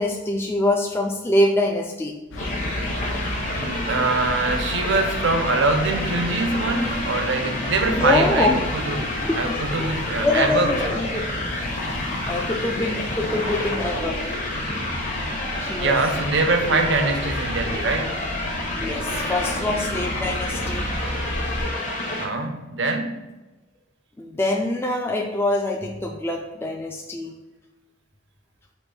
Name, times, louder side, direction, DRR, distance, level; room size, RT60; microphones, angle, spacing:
voice 1, 0.0-2.2 7.9-8.6 9.2-9.5 10.2-11.2 12.3-14.1 15.6-16.0 17.0-17.1 18.8-20.9 24.2-27.3, left 1 dB, 10° left, 0 dB, 0.3 m, -24 dB
sound 1, 2.3-21.7, left 1 dB, 75° left, 0.7 m, -33 dB
sound 2, 2.4-22.3, left 1 dB, 40° left, 0.9 m, -29 dB
voice 2, 3.6-9.1 9.4-11.0 15.7-18.2 22.2-23.2, right 3 dB, 60° right, 5 dB, 0.6 m, -23 dB
4.4 x 2.6 x 4.7 m, 1.1 s
head